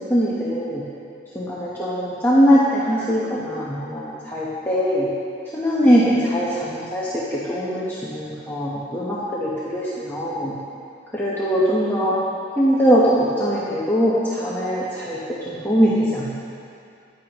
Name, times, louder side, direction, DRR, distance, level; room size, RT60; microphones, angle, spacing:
voice 1, 0.1-0.8 1.3-5.1 5.5-10.5 11.1-12.1 12.6-13.0 13.4-16.3, equal, 10° left, -9 dB, 1.1 m, -21 dB
14.0 x 10.5 x 3.0 m, 2.5 s
head